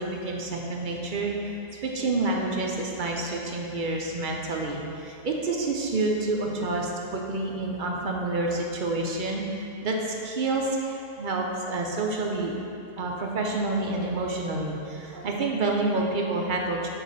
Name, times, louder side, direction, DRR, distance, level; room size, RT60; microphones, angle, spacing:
voice 1, 0.0-1.4 1.7-12.5 13.0-16.9, right 2 dB, 55° right, 0 dB, 0.6 m, -28 dB
6.5 x 3.9 x 4.0 m, 2.6 s
omnidirectional pair, 1.2 m